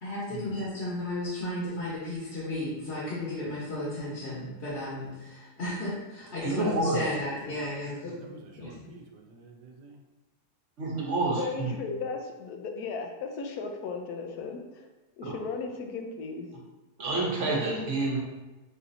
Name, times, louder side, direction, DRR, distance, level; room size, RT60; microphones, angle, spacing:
voice 1, 0.0-8.9, left 1 dB, 45° left, -8 dB, 1.3 m, -34 dB
voice 2, 6.4-7.0 10.8-11.7 15.2-15.3 17.0-18.2, right 2 dB, 50° right, -3 dB, 1.1 m, -28 dB
voice 3, 7.5-8.4 8.6-10.0, right 3 dB, 85° right, 3 dB, 1.2 m, -50 dB
voice 4, 11.4-14.8 15.2-16.5, left 4 dB, 70° left, 3 dB, 1.1 m, -36 dB
6.6 x 2.7 x 2.6 m, 1.1 s
omnidirectional pair, 1.7 m